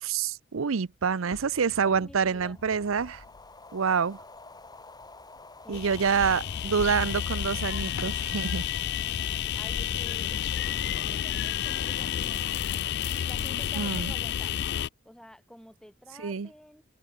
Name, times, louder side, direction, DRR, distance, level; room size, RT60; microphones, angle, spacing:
voice 1, 0.0-3.2 3.7-4.2 5.7-8.6 13.8-14.1 16.2-16.5, right 6 dB, 75° right, 0.6 m, -27 dB
sound 1, 1.2-3.7 4.1-4.2 4.7-4.8 5.0-5.1 5.4-5.5 5.8-8.4, left 3 dB, 75° left, 0.9 m, -47 dB
voice 2, 1.8-2.6 5.6-6.5 9.5-12.5 13.3-14.6 15.0-16.9, equal, 5° left, 2.8 m, -50 dB
sound 2, 2.4-11.9, left 3 dB, 20° left, 5.3 m, -51 dB
sound 3, 5.7-14.9, left 10 dB, 55° left, 0.4 m, -30 dB
head